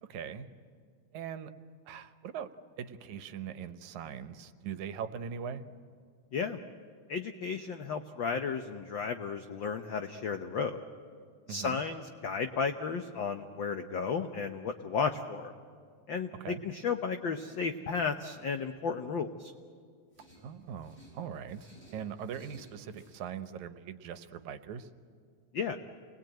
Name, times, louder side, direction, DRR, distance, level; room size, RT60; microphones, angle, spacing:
voice 1, 0.0-0.5 1.1-1.5 1.9-2.5 2.8-5.6 11.5-11.8 16.4-16.6 20.4-24.9, right 8 dB, 80° right, 11 dB, 2.4 m, -41 dB
voice 2, 7.1-10.8 11.5-15.5 16.1-19.5 25.5-25.8, left 5 dB, 70° left, 7 dB, 1.1 m, -33 dB
sound 1, 20.1-23.2, right 1 dB, 10° left, 5.7 m, -57 dB
28.5 x 21.0 x 9.1 m, 2.2 s
omnidirectional pair, 3.3 m